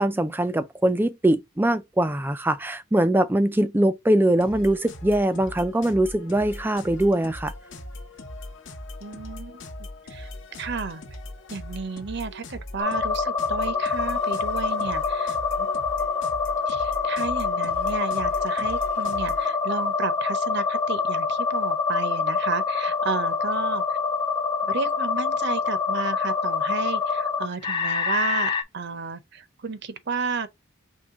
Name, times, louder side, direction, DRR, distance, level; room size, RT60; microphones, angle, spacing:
voice 1, 0.0-7.5, right 1 dB, 10° right, 0.3 m, -22 dB
sound 1, 4.4-19.5, left 1 dB, 60° left, 1.0 m, -40 dB
voice 2, 9.0-9.6 10.1-10.3 10.6-11.0 11.5-15.7 16.7-24.0 24.6-30.5, right 4 dB, 55° right, 0.6 m, -32 dB
sound 2, 12.8-28.6, left 5 dB, 20° left, 0.6 m, -26 dB
4.6 x 3.1 x 3.6 m
head